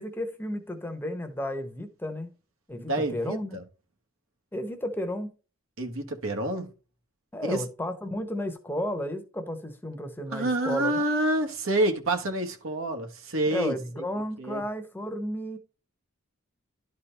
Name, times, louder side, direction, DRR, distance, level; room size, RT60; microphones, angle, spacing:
voice 1, 0.0-2.3 2.7-3.6 4.5-5.3 7.3-11.1 13.5-15.6, left 1 dB, 10° left, 0.9 m, -33 dB
voice 2, 2.7-3.6 5.8-6.7 7.4-7.6 10.3-13.7 14.1-14.6, right 1 dB, 75° right, 1.3 m, -28 dB
12.0 x 4.3 x 3.3 m
head